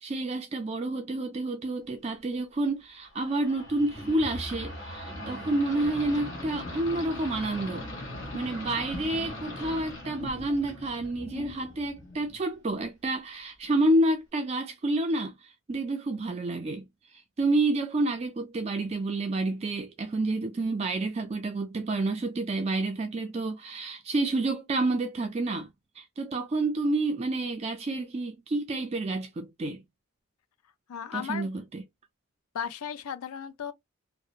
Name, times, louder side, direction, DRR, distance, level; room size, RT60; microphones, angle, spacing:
voice 1, 0.0-7.8 8.3-16.8 17.1-29.8 31.1-31.8, right 2 dB, 30° right, 0.3 m, -29 dB
sound 1, 3.1-12.5, left 1 dB, 55° left, 1.1 m, -40 dB
voice 2, 30.9-31.5 32.5-33.7, left 8 dB, 85° left, 0.4 m, -35 dB
2.7 x 2.0 x 2.3 m
head